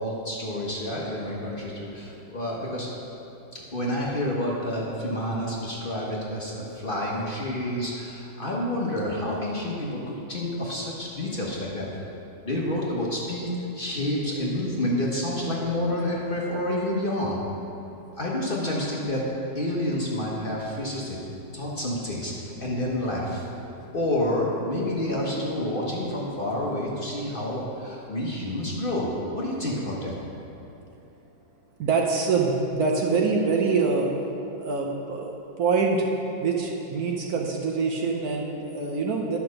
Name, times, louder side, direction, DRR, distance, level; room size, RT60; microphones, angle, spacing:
voice 1, 0.0-2.9 3.5-11.9 12.4-17.4 18.2-19.3 19.5-21.2 21.5-22.3 22.6-23.4 23.9-30.1, left 1 dB, 35° left, -4 dB, 1.2 m, -29 dB
voice 2, 31.8-34.1 34.5-35.3 35.6-36.0 36.4-39.4, right 4 dB, 60° right, 0 dB, 1.2 m, -25 dB
11.0 x 5.8 x 6.4 m, 2.9 s
omnidirectional pair, 1.9 m